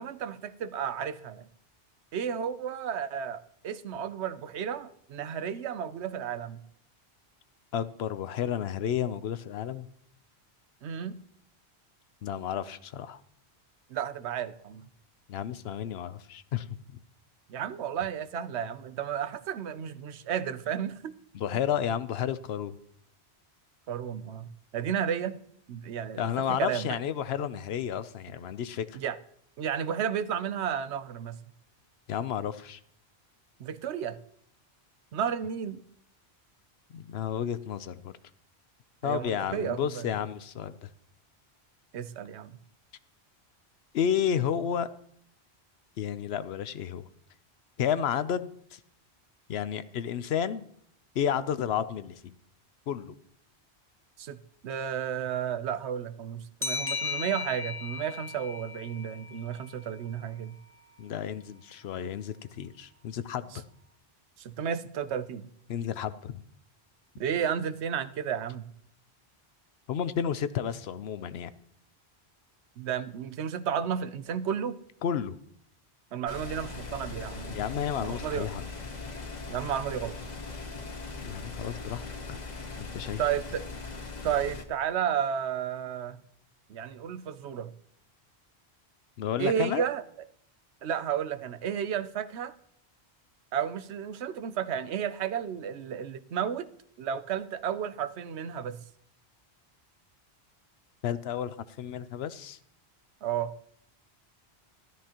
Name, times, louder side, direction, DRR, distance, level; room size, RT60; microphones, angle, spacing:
voice 1, 0.0-1.4 2.1-6.6 10.8-11.2 13.9-14.8 17.5-21.1 23.9-25.4 25.7-26.9 28.9-29.2 29.6-31.4 33.6-34.2 35.1-35.8 39.0-40.1 41.9-42.6 54.2-54.4 54.6-60.6 63.5-63.6 64.4-65.5 67.2-68.7 72.8-74.8 76.1-77.6 78.0-78.5 79.5-80.2 83.2-83.6 84.2-86.2 86.7-87.7 89.4-90.0 90.8-92.5 93.5-96.7 97.0-98.8 103.2-103.5, right 8 dB, 90° right, 12 dB, 1.0 m, -32 dB
voice 2, 7.7-9.9 12.2-13.2 15.3-17.0 21.3-22.8 26.2-29.0 32.1-32.8 36.9-38.1 39.0-40.9 43.9-44.9 46.0-47.1 47.8-48.8 49.5-50.6 51.1-52.3 52.9-53.1 61.0-63.6 65.7-66.4 69.9-71.5 75.0-75.4 77.5-78.6 81.2-82.1 82.8-83.2 89.2-89.8 101.0-102.6, left 9 dB, 75° left, 14 dB, 0.9 m, -31 dB
sound 1, 56.6-59.9, left 4 dB, 15° left, 0.5 m, -36 dB
sound 2, 76.3-84.6, left 3 dB, 40° left, 1.2 m, -40 dB
13.0 x 12.5 x 2.9 m, 0.69 s
omnidirectional pair, 1.1 m